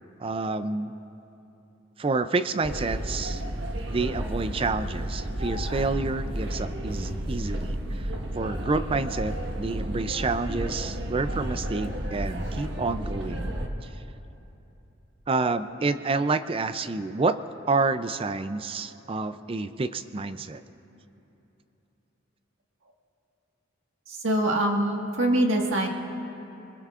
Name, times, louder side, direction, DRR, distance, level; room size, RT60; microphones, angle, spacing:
voice 1, 0.2-0.9 2.0-3.4 3.9-13.5 13.8-13.9 15.3-17.4 17.7-20.6, right 3 dB, 30° right, 12 dB, 0.4 m, -29 dB
sound 1, 2.6-13.7, right 1 dB, 70° right, 1.4 m, -32 dB
voice 2, 24.1-25.9, right 1 dB, 85° right, 1 dB, 1.7 m, -24 dB
26.5 x 21.5 x 2.5 m, 2.9 s
head